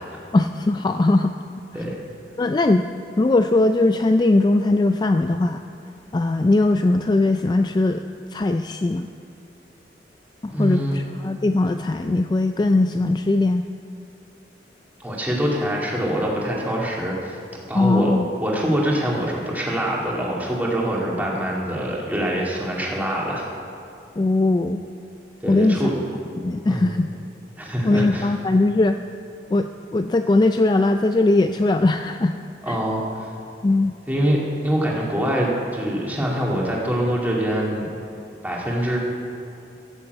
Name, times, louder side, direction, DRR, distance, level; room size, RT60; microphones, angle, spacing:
voice 1, 0.3-1.3 2.4-2.8 3.2-5.6 6.1-9.1 10.4-13.7 17.7-18.3 24.2-24.8 25.4-25.9 26.4-27.1 27.8-29.0 29.5-32.4 32.7-32.8 33.6-33.9, left 2 dB, 25° left, 7 dB, 0.3 m, -20 dB
voice 2, 10.5-11.0 15.0-17.4 17.7-18.1 18.4-23.5 25.4-25.9 26.7-26.9 27.6-28.3 32.6-33.3 34.1-37.9 38.4-39.0, equal, 10° right, -4 dB, 2.4 m, -24 dB
14.0 x 7.2 x 8.1 m, 2.6 s
head